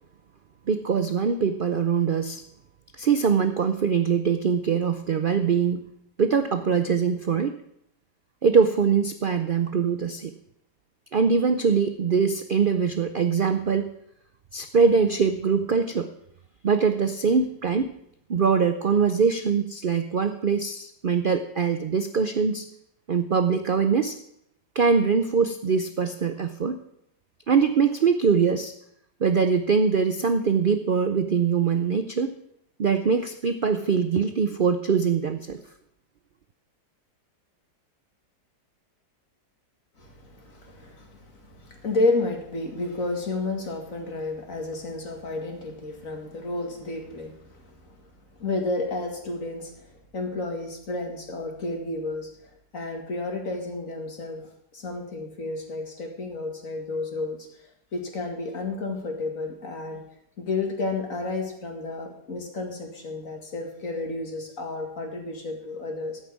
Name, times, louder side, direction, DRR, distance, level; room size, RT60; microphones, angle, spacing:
voice 1, 0.7-2.4 3.0-5.8 6.2-7.6 8.4-10.3 11.1-13.9 14.5-16.1 16.6-17.9 18.3-22.7 23.1-24.2 24.7-26.8 27.5-28.7 29.2-32.3 32.8-35.6, right 6 dB, 80° right, 8 dB, 0.4 m, -23 dB
voice 2, 40.0-48.1 48.4-57.4 57.9-60.0 60.4-66.2, left 2 dB, 50° left, 3 dB, 2.4 m, -31 dB
13.5 x 5.8 x 8.5 m, 0.74 s
omnidirectional pair, 1.8 m